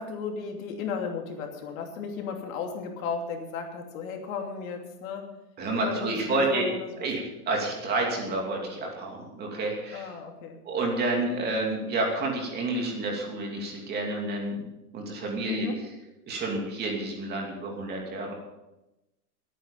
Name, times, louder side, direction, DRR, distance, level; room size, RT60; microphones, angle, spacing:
voice 1, 0.0-5.3 5.7-7.1 9.9-10.6 15.5-15.8, left 5 dB, 60° left, 3 dB, 2.8 m, -35 dB
voice 2, 5.6-6.7 7.0-10.1 10.6-14.7 14.9-15.7 16.3-18.3, right 2 dB, 20° right, 0 dB, 2.7 m, -29 dB
20.5 x 9.3 x 5.4 m, 0.98 s
supercardioid pair, 165°, 46 cm